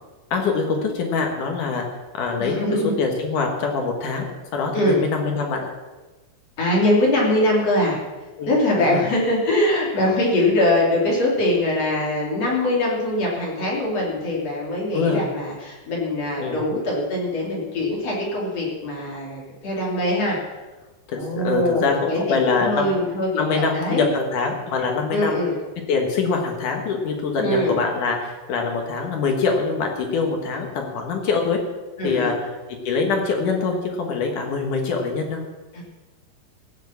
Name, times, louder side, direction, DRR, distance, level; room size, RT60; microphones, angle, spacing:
voice 1, 0.3-1.9 2.1-2.7 3.0-4.3 4.5-5.7 8.4-8.5 8.8-9.0 14.9-15.2 16.4-16.7 21.1-23.0 23.4-25.4 25.9-31.6 32.0-32.5 32.8-35.4, left 4 dB, 60° left, 2 dB, 2.5 m, -24 dB
voice 2, 2.4-3.0 4.7-5.0 6.6-8.0 8.5-20.4 21.1-24.1 25.1-25.6 27.4-27.8 32.0-32.3 35.7-35.8, left 1 dB, 40° left, -3 dB, 3.4 m, -22 dB
16.0 x 7.4 x 7.1 m, 1.2 s
omnidirectional pair, 5.0 m